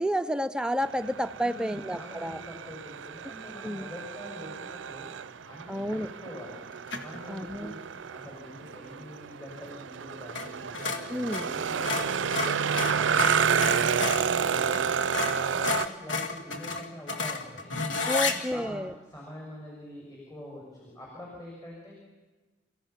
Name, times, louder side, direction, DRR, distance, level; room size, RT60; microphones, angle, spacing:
voice 1, 0.0-2.4 3.6-3.9 5.7-6.1 7.3-7.7 11.1-11.5 18.0-18.9, equal, 5° right, 10 dB, 0.6 m, -30 dB
sound 1, 0.8-15.9, right 7 dB, 85° right, 0.5 m, -30 dB
voice 2, 1.4-5.1 5.5-6.6 7.0-7.8 8.1-17.6 18.1-21.9, left 1 dB, 20° left, -4 dB, 6.6 m, -45 dB
sound 2, 6.9-7.2 10.3-10.5 10.7-14.3 14.7-14.8 15.1-18.4, left 4 dB, 80° left, 2.0 m, -31 dB
29.5 x 16.0 x 5.9 m, 1.2 s
head